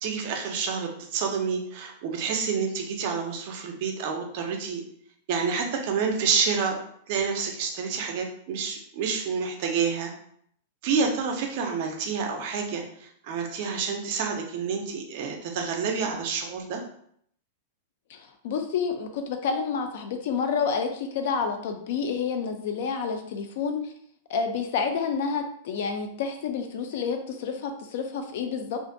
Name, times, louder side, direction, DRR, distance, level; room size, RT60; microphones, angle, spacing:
voice 1, 0.0-4.8 5.3-6.8 7.1-10.1 10.8-16.8, right 5 dB, 40° right, 3 dB, 0.4 m, -28 dB
voice 2, 18.4-23.8 24.3-28.8, left 6 dB, 50° left, 6 dB, 0.3 m, -29 dB
2.4 x 2.1 x 2.6 m, 0.67 s
supercardioid pair, 175°, 0 cm